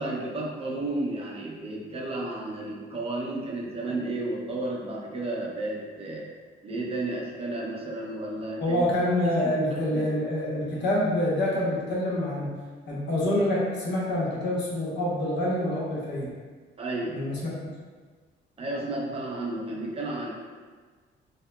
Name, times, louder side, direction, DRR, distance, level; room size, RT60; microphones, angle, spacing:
voice 1, 0.0-6.3 6.6-8.9 9.2-10.1 16.8-17.2 18.6-20.3, right 2 dB, 30° right, -3 dB, 0.6 m, -32 dB
voice 2, 8.6-12.5 12.9-16.3 17.1-17.5, left 1 dB, 60° left, -6 dB, 0.9 m, -26 dB
2.7 x 2.0 x 2.3 m, 1.5 s
cardioid pair, 90°, 20 cm